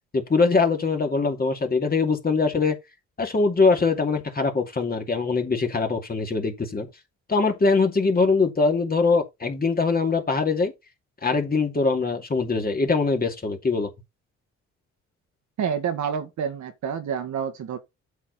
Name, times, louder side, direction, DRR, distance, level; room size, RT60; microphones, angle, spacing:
voice 1, 0.1-2.8 3.2-6.9 7.3-10.7 11.2-13.9, left 4 dB, 30° left, 2.5 m, -22 dB
voice 2, 15.6-17.8, right 7 dB, 70° right, 1.8 m, -28 dB
8.3 x 6.3 x 4.1 m
cardioid pair, 90°, 30 cm